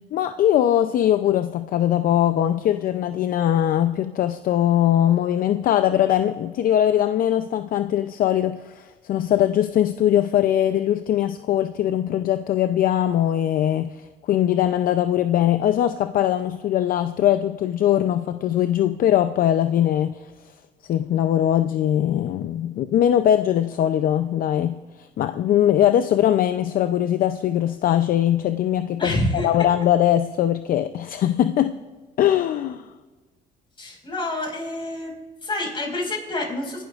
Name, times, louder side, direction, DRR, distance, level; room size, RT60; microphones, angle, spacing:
voice 1, 0.1-20.3 20.8-29.2 29.4-31.8 32.2-32.9, left 11 dB, 55° left, 10 dB, 0.5 m, -21 dB
voice 2, 29.0-29.5 33.8-35.1 35.4-36.8, left 1 dB, 30° left, 0 dB, 4.9 m, -27 dB
28.5 x 12.0 x 2.5 m, 1.3 s
cardioid pair, 110°, 17 cm